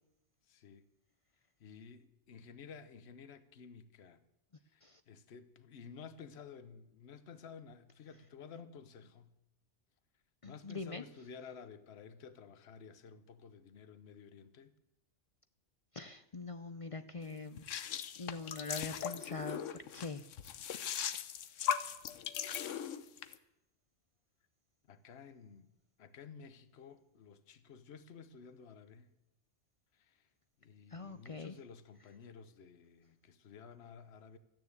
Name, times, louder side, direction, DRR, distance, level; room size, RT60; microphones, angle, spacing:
voice 1, 0.5-0.9 1.6-4.2 4.6-9.4 10.4-14.7 24.9-25.7 26.0-29.1 29.9-30.3 30.6-34.4, left 6 dB, 60° left, 1.2 m, -53 dB
voice 2, 10.4-11.0 15.9-17.7 18.2-20.2 30.9-31.5, left 3 dB, 45° left, 0.4 m, -43 dB
sound 1, 17.6-23.3, left 8 dB, 90° left, 1.1 m, -39 dB
14.0 x 9.3 x 8.1 m
omnidirectional pair, 1.2 m